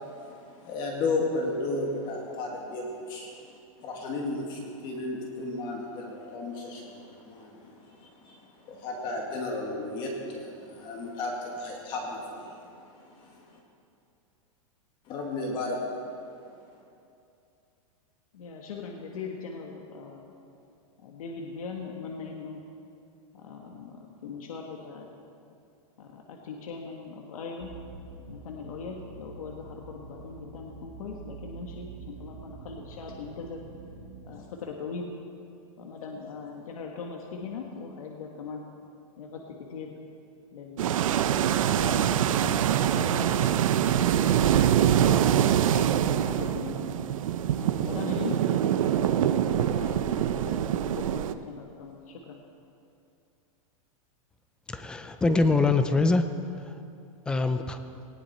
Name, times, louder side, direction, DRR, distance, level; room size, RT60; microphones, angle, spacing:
voice 1, 0.0-13.6 15.1-16.0, left 2 dB, 25° left, 0 dB, 2.0 m, -34 dB
voice 2, 18.3-20.3 21.0-22.6 23.3-25.1 26.0-27.8 28.3-33.6 34.2-35.1 35.8-38.7 39.2-39.9 40.5-41.1 41.6-43.3 43.7-44.4 44.7-47.0 47.6-48.5 48.9-52.4, left 5 dB, 80° left, 1 dB, 1.8 m, -40 dB
sound 1, 27.6-34.3, right 5 dB, 45° right, 2.2 m, -46 dB
sound 2, 40.8-51.3, right 10 dB, 70° right, 0.8 m, -24 dB
voice 3, 54.7-56.2 57.3-57.8, left 3 dB, 5° left, 9 dB, 0.4 m, -23 dB
19.0 x 17.5 x 4.3 m, 2.6 s
supercardioid pair, 170°, 18 cm